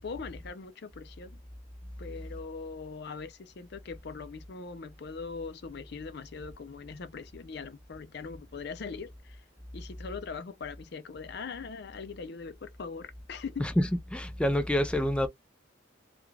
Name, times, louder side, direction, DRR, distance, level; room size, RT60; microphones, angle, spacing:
voice 1, 0.0-1.4 2.0-9.4 9.7-13.7, left 5 dB, 60° left, 0.5 m, -41 dB
voice 2, 14.1-15.3, left 1 dB, 5° left, 0.4 m, -27 dB
3.6 x 2.3 x 3.2 m
head